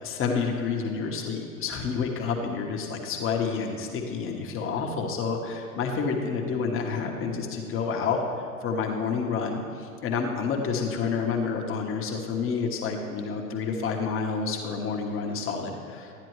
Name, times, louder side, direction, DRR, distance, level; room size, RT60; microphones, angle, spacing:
voice 1, 0.0-8.2 8.6-16.1, left 5 dB, 30° left, 1 dB, 1.3 m, -29 dB
12.5 x 9.7 x 3.2 m, 2.8 s
figure-of-eight pair, 95°, 43 cm